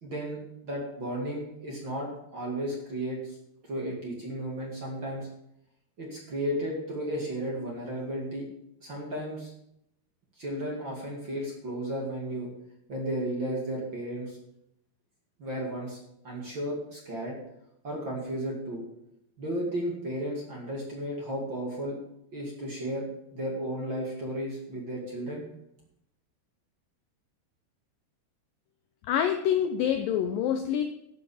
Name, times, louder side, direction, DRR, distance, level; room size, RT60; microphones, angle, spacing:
voice 1, 0.0-3.4 3.7-5.3 6.0-8.5 8.8-9.5 10.4-12.5 12.9-14.4 15.4-16.0 16.2-17.3 17.8-18.8 19.4-22.0 22.3-23.0 23.3-25.4, right 1 dB, 35° right, -2 dB, 2.2 m, -34 dB
voice 2, 29.1-30.8, left 9 dB, 85° left, 7 dB, 2.0 m, -26 dB
12.5 x 6.1 x 7.1 m, 0.79 s
omnidirectional pair, 4.7 m